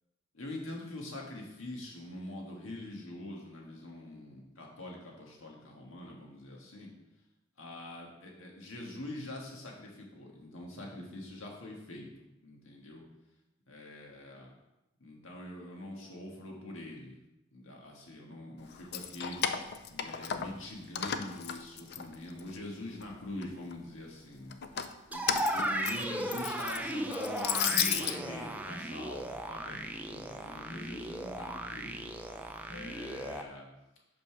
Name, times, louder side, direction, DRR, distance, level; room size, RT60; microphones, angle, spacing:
voice 1, 0.3-6.9 7.6-12.1 12.4-13.0 13.7-14.5 15.0-17.2 17.5-19.4 19.9-24.6 25.1-32.1 32.7-33.7, left 1 dB, 85° left, -1 dB, 1.6 m, -44 dB
Keys jangling, 18.7-20.7 21.0-22.6 23.0-23.7 24.5-28.2, left 8 dB, 55° left, 0.4 m, -34 dB
sound 1, 25.1-33.4, right 1 dB, 10° right, 0.4 m, -36 dB
5.3 x 5.2 x 5.9 m, 0.95 s
head